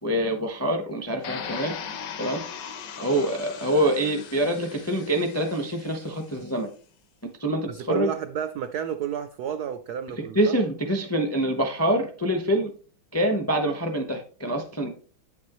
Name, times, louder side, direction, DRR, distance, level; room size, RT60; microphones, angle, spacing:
voice 1, 0.0-1.7 2.2-2.4 3.0-6.7 7.4-8.1 10.3-12.7 13.1-14.9, right 1 dB, 20° left, 3 dB, 0.4 m, -25 dB
sound 1, 1.2-6.2, left 7 dB, 60° left, 1.5 m, -39 dB
voice 2, 7.7-10.5, right 9 dB, 80° right, 10 dB, 0.8 m, -31 dB
9.3 x 7.3 x 3.1 m, 0.41 s
omnidirectional pair, 2.4 m